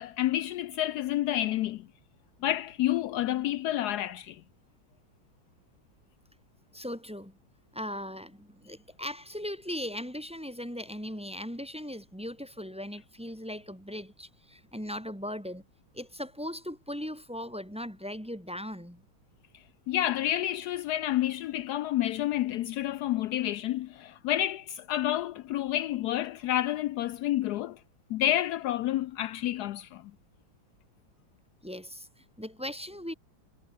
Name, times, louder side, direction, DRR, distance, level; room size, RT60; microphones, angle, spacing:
voice 1, 0.0-1.9 2.4-4.4 19.9-27.8 28.1-30.0, left 13 dB, 85° left, 0.8 m, -29 dB
voice 2, 6.7-7.4 7.7-15.6 15.9-19.0 31.6-33.1, equal, 5° right, 2.1 m, -38 dB
omnidirectional pair, 2.3 m